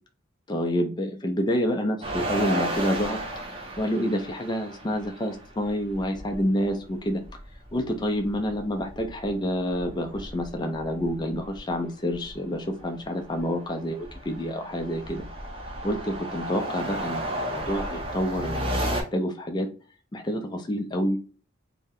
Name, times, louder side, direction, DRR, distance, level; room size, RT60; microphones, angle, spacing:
voice 1, 0.5-3.2 3.8-7.2 7.7-15.3 15.8-19.7 20.1-21.2, equal, 20° left, 4 dB, 0.4 m, -28 dB
sound 1, 2.0-6.4 6.7-6.8 7.1-9.4 9.7-11.6 12.1-12.3 12.8-19.0, right 1 dB, 25° right, 0.6 m, -33 dB
2.7 x 2.1 x 3.5 m, 0.37 s
head